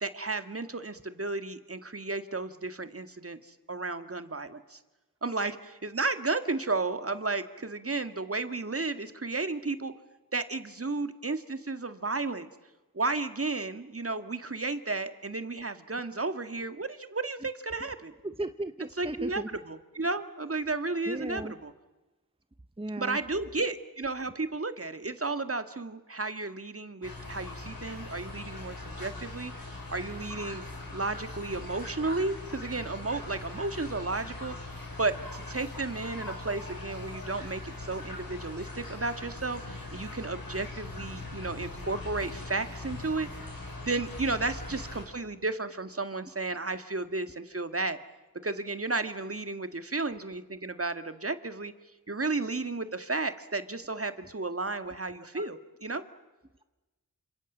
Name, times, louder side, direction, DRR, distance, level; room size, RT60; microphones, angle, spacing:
voice 1, 0.0-4.8 5.2-9.9 10.3-12.5 12.9-18.1 19.0-21.7 23.0-30.6 30.9-34.6 35.0-43.3 43.8-48.0 48.4-51.7 52.1-56.0, right 3 dB, 40° right, 10 dB, 2.0 m, -33 dB
voice 2, 18.2-19.5 21.1-21.5 22.8-23.2 55.3-55.4, right 1 dB, 15° right, 10 dB, 1.0 m, -36 dB
sound 1, 27.0-45.0, left 2 dB, 75° left, 7.0 m, -41 dB
28.5 x 26.5 x 7.5 m, 1.1 s
wide cardioid pair, 60°, 35 cm